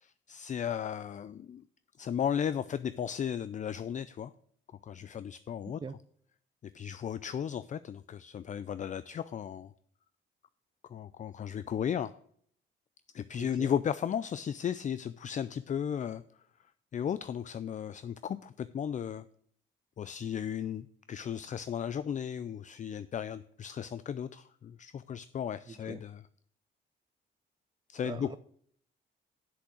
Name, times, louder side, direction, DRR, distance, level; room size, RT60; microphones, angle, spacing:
voice 1, 0.0-1.6 2.0-4.3 4.8-5.8 6.7-9.7 10.9-12.1 13.1-16.2 16.9-19.2 20.0-26.2 27.9-28.3, left 8 dB, 40° left, 14 dB, 0.4 m, -35 dB
voice 2, 13.4-13.7 25.7-26.0 28.0-28.4, right 5 dB, 25° right, 13 dB, 0.6 m, -42 dB
7.8 x 6.7 x 6.2 m, 0.62 s
cardioid pair, 90°, 20 cm